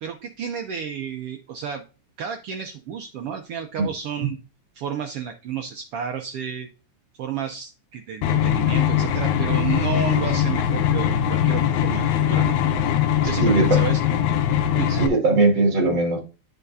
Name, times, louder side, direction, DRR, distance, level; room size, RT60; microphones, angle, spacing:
voice 1, 0.0-1.8 2.2-4.4 4.7-6.7 7.2-12.6 13.2-14.0 14.8-14.9, right 8 dB, 90° right, 5 dB, 1.3 m, -31 dB
sound 1, 8.2-15.1, left 9 dB, 80° left, 2.1 m, -21 dB
voice 2, 13.4-13.8 14.9-16.2, right 3 dB, 40° right, 1 dB, 2.5 m, -19 dB
10.0 x 5.1 x 2.7 m, 0.33 s
omnidirectional pair, 3.4 m